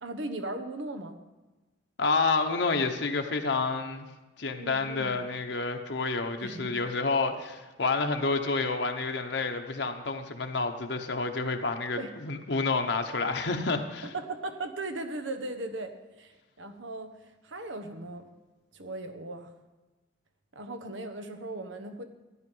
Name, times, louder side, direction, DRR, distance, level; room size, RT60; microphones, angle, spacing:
voice 1, 0.0-1.2 4.6-5.2 6.4-6.7 7.2-7.4 12.0-12.1 14.0-18.3 18.7-19.5 20.5-22.0, right 2 dB, 85° right, 6 dB, 1.3 m, -38 dB
voice 2, 2.0-4.1 4.4-14.1, left 3 dB, 70° left, 4 dB, 1.0 m, -29 dB
14.0 x 10.5 x 5.5 m, 1.2 s
head